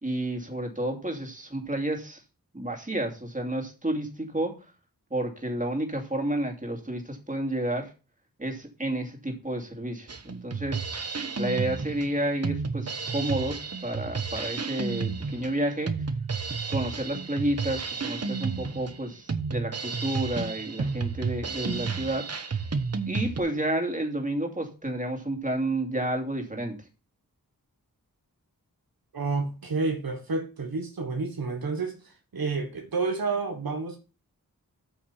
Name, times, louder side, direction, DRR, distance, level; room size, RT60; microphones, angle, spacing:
voice 1, 0.0-2.2 2.5-4.5 5.1-7.9 8.4-10.8 11.3-15.9 16.7-22.2 23.1-26.7, right 1 dB, 20° right, 2.8 m, -30 dB
Drum kit, 10.1-23.4, right 5 dB, 45° right, 1.1 m, -32 dB
voice 2, 29.1-34.0, right 4 dB, 75° right, 1.5 m, -30 dB
8.8 x 5.9 x 5.6 m
wide cardioid pair, 60°, 36 cm